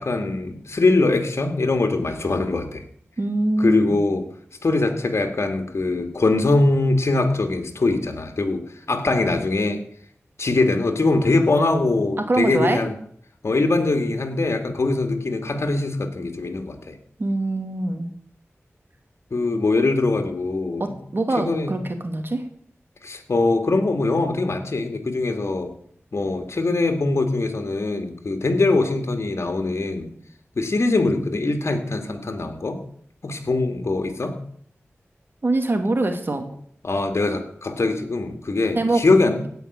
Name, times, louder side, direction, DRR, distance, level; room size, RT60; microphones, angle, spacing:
voice 1, 0.0-2.8 3.6-4.3 4.6-9.8 10.4-12.9 13.4-16.9 19.3-21.0 21.4-21.8 23.0-25.7 26.1-30.1 30.6-32.8 33.2-34.4 36.8-39.5, left 2 dB, 65° left, 6 dB, 2.1 m, -22 dB
voice 2, 3.2-4.0 12.3-12.8 17.2-18.0 20.8-22.4 35.4-36.4 38.7-39.0, right 2 dB, 50° right, 5 dB, 2.5 m, -23 dB
16.5 x 5.6 x 8.7 m, 0.63 s
cardioid pair, 45°, 5 cm